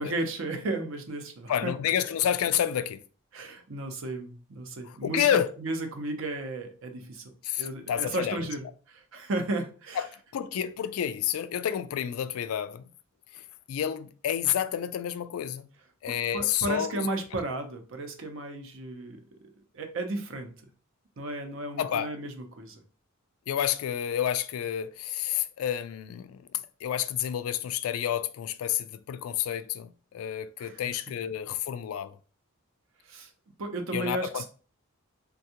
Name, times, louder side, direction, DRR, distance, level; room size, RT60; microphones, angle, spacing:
voice 1, 0.0-1.7 3.3-7.2 7.6-10.1 16.1-19.2 19.7-20.5 21.2-22.8 30.6-30.8 33.1-33.3 33.6-34.5, right 2 dB, 65° right, 0.6 m, -34 dB
voice 2, 1.5-3.0 4.8-5.6 7.4-8.4 10.0-10.1 10.3-12.9 13.3-13.4 13.7-15.7 16.0-17.1 21.8-22.2 23.5-26.4 26.8-32.2 33.9-34.5, left 10 dB, 85° left, 0.3 m, -29 dB
3.4 x 2.3 x 2.7 m
head